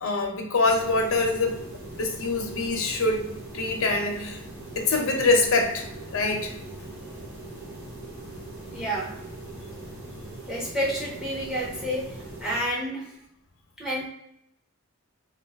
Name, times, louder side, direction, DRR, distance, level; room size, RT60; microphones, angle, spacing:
voice 1, 0.0-1.6 2.0-4.4 4.8-5.9 6.1-6.5, left 3 dB, 70° left, 2 dB, 0.6 m, -24 dB
sound 1, 0.6-12.6, right 2 dB, 75° right, 1.3 m, -41 dB
voice 2, 8.7-9.1 10.5-12.0 12.4-13.0 13.8-14.1, equal, 5° right, -4 dB, 0.6 m, -29 dB
2.5 x 2.3 x 3.4 m, 0.76 s
head